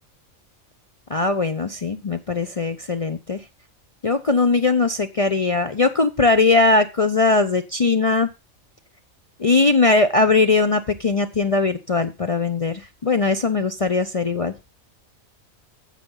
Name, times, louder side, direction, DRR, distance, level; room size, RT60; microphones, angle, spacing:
voice 1, 1.1-3.4 4.0-8.3 9.4-14.5, left 3 dB, 45° left, 9 dB, 0.4 m, -20 dB
9.2 x 7.0 x 5.5 m, 0.27 s
omnidirectional pair, 1.4 m